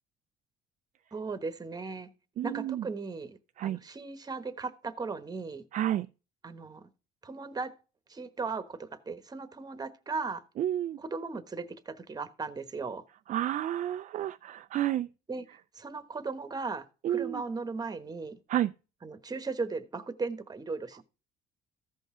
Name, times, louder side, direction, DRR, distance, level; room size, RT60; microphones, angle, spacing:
voice 1, 1.1-2.1 2.4-3.4 3.6-5.6 6.4-6.9 7.2-7.7 8.1-10.4 11.0-13.0 15.3-15.4 15.7-18.3 19.0-21.0, right 4 dB, 25° right, 1.1 m, -37 dB
voice 2, 2.4-2.8 3.6-3.8 5.7-6.1 10.6-11.0 13.3-15.1 17.0-17.4 18.5-18.7, right 12 dB, 50° right, 0.4 m, -30 dB
14.5 x 5.5 x 3.7 m
cardioid pair, 110°, 17 cm